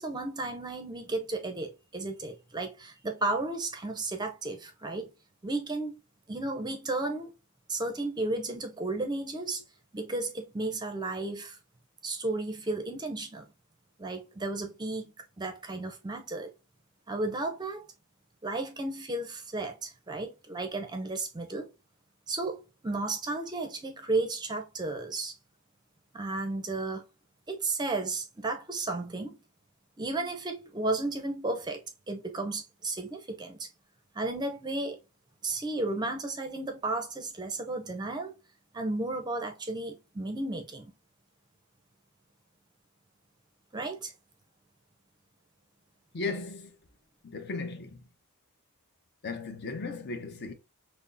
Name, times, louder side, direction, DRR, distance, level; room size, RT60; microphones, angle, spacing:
voice 1, 0.0-5.1 5.4-6.0 6.3-7.3 7.7-9.6 9.9-11.6 12.0-13.5 14.0-16.5 17.1-17.8 18.4-21.7 22.3-25.3 26.1-27.0 27.5-29.4 30.0-31.8 32.1-33.7 34.1-35.0 35.4-38.3 38.7-40.9 43.7-44.1, right 2 dB, 20° right, 0.5 m, -33 dB
voice 2, 46.1-46.8 47.2-48.1 49.2-50.5, left 3 dB, 50° left, 0.6 m, -36 dB
5.7 x 2.0 x 2.5 m
head